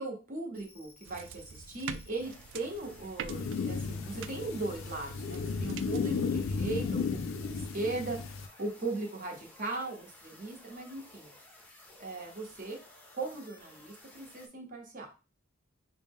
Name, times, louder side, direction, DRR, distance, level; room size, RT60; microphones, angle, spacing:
voice 1, 0.0-11.3 12.0-12.8 13.1-15.1, right 2 dB, 40° right, 1 dB, 1.0 m, -38 dB
sound 1, 0.5-14.5, left 1 dB, 10° left, 0.6 m, -56 dB
sound 2, 1.0-6.2, right 7 dB, 65° right, 0.3 m, -46 dB
sound 3, 3.3-8.5, left 5 dB, 75° left, 0.4 m, -34 dB
5.2 x 2.1 x 3.5 m, 0.32 s
head